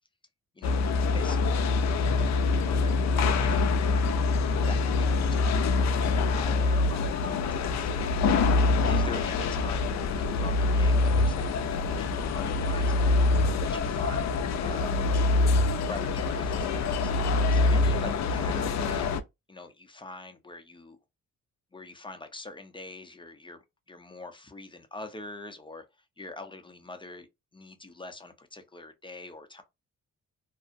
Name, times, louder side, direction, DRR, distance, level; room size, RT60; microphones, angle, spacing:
sound 1, 0.6-19.2, left 3 dB, 65° left, 0.4 m, -25 dB
voice 1, 1.1-4.0 4.6-8.5 8.9-13.1 13.6-14.4 14.6-15.0 15.8-17.1 17.5-19.1 19.5-21.0 21.7-25.8 26.2-27.3 27.5-29.6, left 2 dB, 15° left, 0.5 m, -44 dB
2.6 x 2.0 x 2.5 m
cardioid pair, 85°, 30 cm